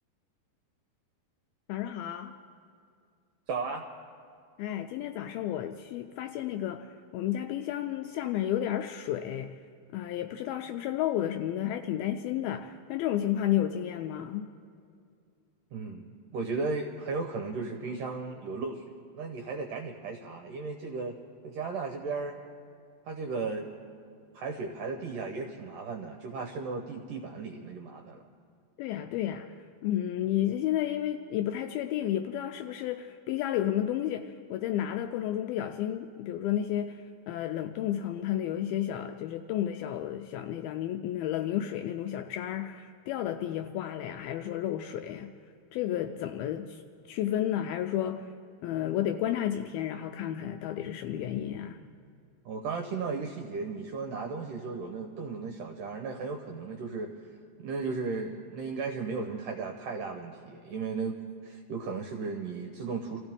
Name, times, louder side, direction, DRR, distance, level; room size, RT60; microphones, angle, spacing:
voice 1, 1.7-2.3 4.6-6.9 7.1-9.5 9.9-14.5 28.8-29.6 29.8-45.3 45.7-48.3 48.6-51.8, left 11 dB, 85° left, 7 dB, 2.2 m, -32 dB
voice 2, 3.5-3.8 15.7-21.2 21.4-22.4 23.1-23.7 24.3-28.2 52.5-57.1 57.6-61.2 61.4-63.2, right 4 dB, 75° right, 3 dB, 2.0 m, -35 dB
26.5 x 15.5 x 3.5 m, 2.3 s
omnidirectional pair, 4.8 m